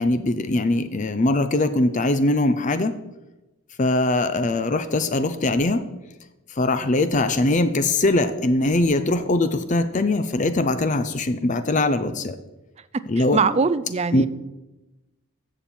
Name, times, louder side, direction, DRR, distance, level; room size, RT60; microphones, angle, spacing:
voice 1, 0.0-2.9 3.8-5.9 6.6-12.4 13.1-13.4 14.1-14.2, left 2 dB, 35° left, 11 dB, 0.5 m, -21 dB
voice 2, 13.2-14.3, right 5 dB, 30° right, 15 dB, 0.4 m, -22 dB
14.0 x 7.1 x 4.4 m, 1.0 s
head